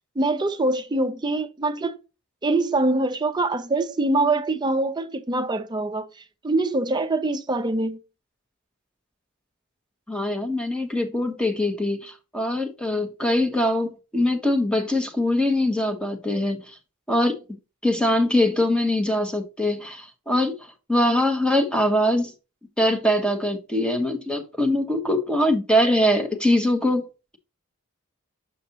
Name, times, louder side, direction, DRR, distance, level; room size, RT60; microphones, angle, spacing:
voice 1, 0.2-2.0 2.4-8.0, right 2 dB, 20° right, 0.5 m, -24 dB
voice 2, 10.1-16.6 17.1-17.3 17.8-20.6 20.9-22.3 22.8-27.0, left 1 dB, 5° left, 1.0 m, -22 dB
6.8 x 5.1 x 2.9 m
head